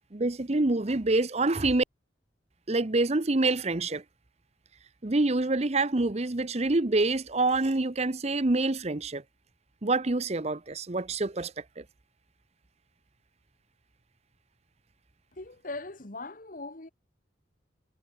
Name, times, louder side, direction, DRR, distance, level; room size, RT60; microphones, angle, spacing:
voice 1, 0.1-1.8 2.7-4.0 5.0-9.2 9.8-11.8, right 2 dB, 35° right, 0.9 m, -26 dB
voice 2, 15.3-16.9, left 2 dB, 45° left, 1.6 m, -40 dB
head